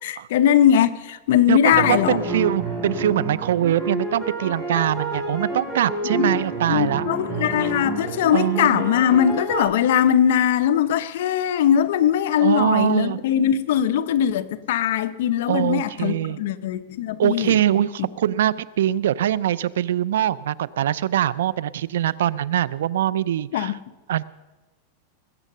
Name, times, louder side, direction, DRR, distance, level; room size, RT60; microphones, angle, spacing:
voice 1, 0.0-2.2 6.1-6.4 6.7-17.6 23.5-23.7, left 10 dB, 70° left, 0.8 m, -20 dB
voice 2, 1.5-7.0 8.3-8.8 12.4-13.2 15.5-16.4 17.2-23.8 24.1-24.2, right 11 dB, 85° right, 0.5 m, -23 dB
sound 1, 1.7-9.6, right 2 dB, 10° right, 5.8 m, -29 dB
20.0 x 8.3 x 6.7 m
supercardioid pair, 150°, 0 cm